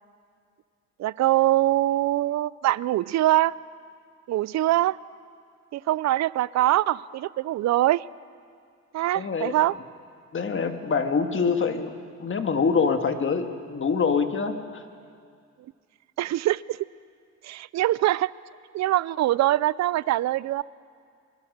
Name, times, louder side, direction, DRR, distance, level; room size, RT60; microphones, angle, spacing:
voice 1, 1.0-3.5 4.3-5.0 5.7-8.0 8.9-9.7 16.2-16.8 17.4-18.3 18.7-20.6, right 15 dB, 60° right, 20 dB, 0.5 m, -23 dB
voice 2, 9.1-9.6 10.3-14.8, left 5 dB, 40° left, 6 dB, 1.7 m, -25 dB
24.0 x 21.5 x 6.7 m, 2.2 s
cardioid pair, 90°, 30 cm